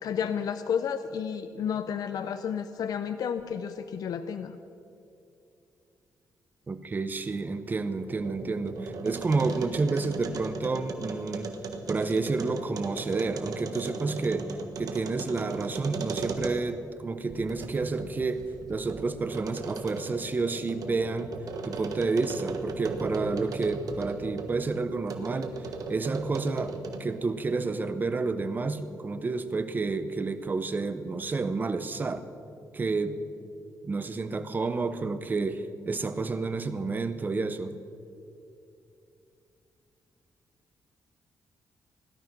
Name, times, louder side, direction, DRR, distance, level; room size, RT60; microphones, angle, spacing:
voice 1, 0.0-4.5, left 7 dB, 65° left, 10 dB, 0.6 m, -31 dB
voice 2, 6.7-11.5 11.9-14.5 14.8-18.4 18.7-21.3 21.6-25.5 25.9-26.7 27.0-32.2 32.7-33.2 33.8-37.7, right 3 dB, 25° right, 10 dB, 0.8 m, -30 dB
sound 1, 7.9-16.8 17.3-24.6 25.1-27.2, right 4 dB, 65° right, 1.4 m, -37 dB
17.0 x 12.0 x 6.0 m, 2.6 s
cardioid pair, 135°, 7 cm